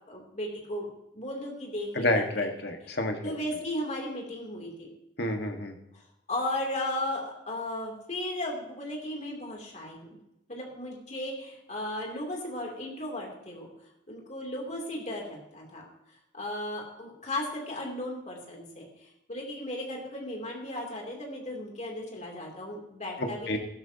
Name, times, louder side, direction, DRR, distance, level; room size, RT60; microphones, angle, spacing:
voice 1, 0.1-2.5 3.2-4.9 5.9-10.2 10.5-13.7 14.1-15.8 16.3-23.6, left 1 dB, 40° left, 0 dB, 3.0 m, -36 dB
voice 2, 1.9-3.3 5.2-5.7 23.2-23.6, left 1 dB, 60° left, 4 dB, 1.6 m, -29 dB
15.5 x 12.5 x 2.9 m, 0.85 s
head